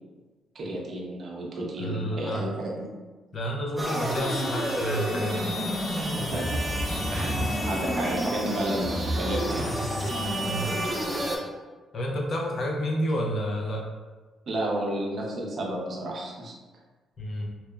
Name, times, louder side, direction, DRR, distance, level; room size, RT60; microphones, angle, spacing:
voice 1, 0.5-2.5 2.8-2.9 5.8-5.9 6.1-6.6 7.1-9.7 14.5-16.5, right 1 dB, 55° right, -2 dB, 0.5 m, -31 dB
voice 2, 1.8-2.5 3.3-5.6 10.4-10.8 11.9-13.9 17.2-17.5, equal, 50° left, -1 dB, 0.5 m, -30 dB
sound 1, 3.8-11.4, equal, 5° right, 0.6 m, -29 dB
2.7 x 2.1 x 2.2 m, 1.3 s
cardioid pair, 90°, 0 cm